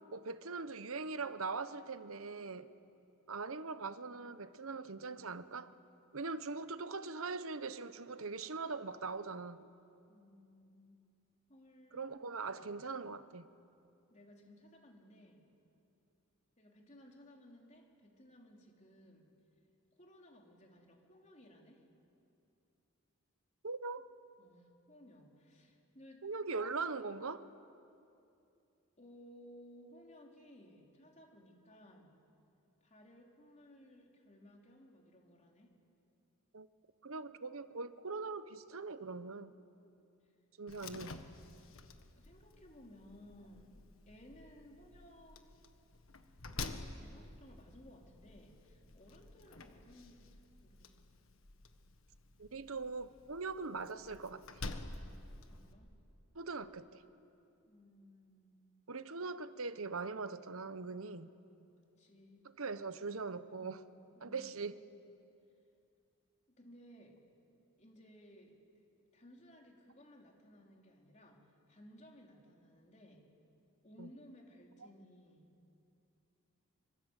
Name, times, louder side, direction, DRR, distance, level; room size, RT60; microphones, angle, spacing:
voice 1, 0.1-2.7 3.3-5.7 6.1-9.6 11.9-13.5 23.6-24.1 26.2-27.5 36.5-36.7 37.0-39.5 40.6-41.2 52.4-54.6 56.3-57.0 58.9-61.3 62.6-63.8 64.2-64.7 74.0-74.1, right 4 dB, 75° right, 1.0 m, -41 dB
voice 2, 10.1-11.0 11.5-12.1 14.1-15.5 16.6-19.3 19.9-21.8 24.4-26.2 29.0-32.1 32.8-35.7 40.2-40.3 42.1-45.4 46.9-51.0 55.5-55.9 57.7-58.7 61.8-62.4 63.5-63.7 64.2-64.5 66.6-67.2 67.8-68.6 69.1-73.3 73.8-75.5, equal, 30° left, 3.7 m, -59 dB
Slam, 40.7-55.7, left 3 dB, 65° left, 1.6 m, -50 dB
26.5 x 25.0 x 8.2 m
head